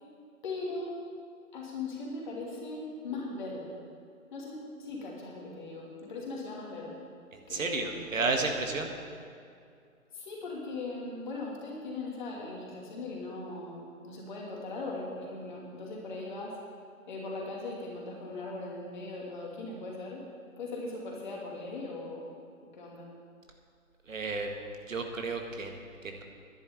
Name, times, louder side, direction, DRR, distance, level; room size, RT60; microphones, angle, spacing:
voice 1, 0.4-1.0 1.5-3.8 4.3-7.0 7.5-8.2 10.1-16.5 17.1-20.2 20.6-22.3 22.7-23.1, left 3 dB, 35° left, -2 dB, 2.6 m, -39 dB
voice 2, 7.3-8.9 24.1-24.5 24.9-26.2, right 3 dB, 65° right, 4 dB, 1.8 m, -32 dB
10.5 x 7.8 x 9.4 m, 2.3 s
hypercardioid pair, 165°, 42 cm